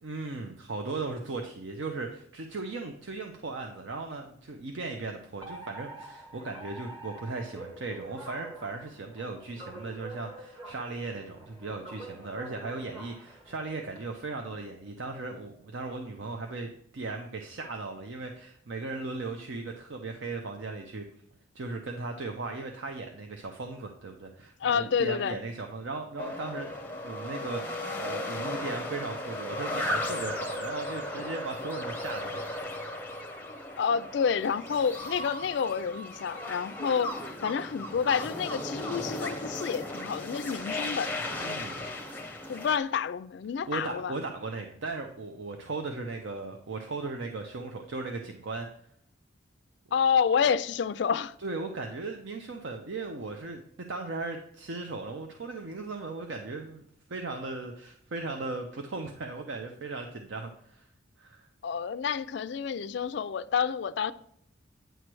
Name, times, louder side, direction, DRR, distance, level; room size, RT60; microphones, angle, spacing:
voice 1, 0.0-21.0 21.5-32.4 41.4-41.8 43.7-48.7 51.4-53.6 53.9-56.8 57.1-60.9 61.2-61.4, right 3 dB, 65° right, 0.6 m, -37 dB
Alarm, 5.4-14.0, right 2 dB, 25° right, 1.7 m, -46 dB
voice 2, 24.6-25.4 33.8-37.1 37.4-41.1 42.5-44.2 49.9-51.3 61.6-64.1, left 6 dB, 55° left, 0.3 m, -29 dB
sound 1, 26.2-42.8, left 1 dB, 10° left, 0.7 m, -36 dB
9.1 x 3.2 x 6.0 m
head